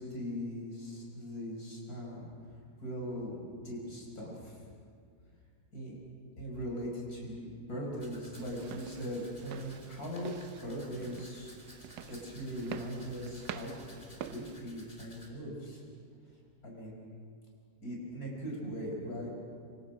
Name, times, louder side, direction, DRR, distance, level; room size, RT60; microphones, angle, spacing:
voice 1, 0.0-2.3 2.8-4.6 5.7-5.9 6.4-11.5 12.1-13.7 14.3-15.8 16.6-17.0 17.8-19.3, equal, 55° left, -3 dB, 5.8 m, -40 dB
Domestic sounds home sounds, 8.0-15.3, left 1 dB, 25° left, 3.4 m, -56 dB
sound 1, 8.3-14.6, right 9 dB, 85° right, 1.5 m, -47 dB
26.5 x 26.0 x 5.1 m, 2.2 s
omnidirectional pair, 1.9 m